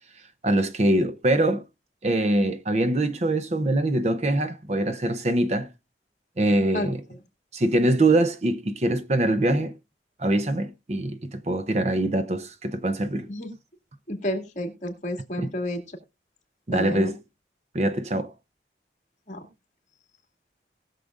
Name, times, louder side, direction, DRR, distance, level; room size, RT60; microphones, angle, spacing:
voice 1, 0.4-1.6 2.0-5.7 6.4-7.0 7.5-9.7 10.2-13.3 15.4-15.5 16.7-17.1 17.7-18.3, right 1 dB, 40° right, 0.6 m, -23 dB
voice 2, 14.1-16.0 16.7-17.1 19.3-19.5, left 1 dB, 40° left, 2.1 m, -31 dB
19.5 x 6.6 x 2.4 m
head